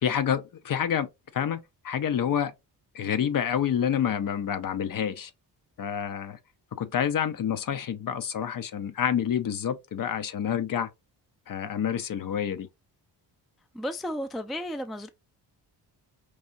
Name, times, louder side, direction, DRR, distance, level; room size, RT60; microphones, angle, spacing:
voice 1, 0.0-2.5 2.9-5.3 5.8-6.4 6.7-10.9 11.5-12.7, left 8 dB, 50° left, 0.6 m, -28 dB
voice 2, 13.7-15.1, equal, ahead, 0.4 m, -33 dB
4.8 x 2.7 x 2.6 m
cardioid pair, 80°, 42 cm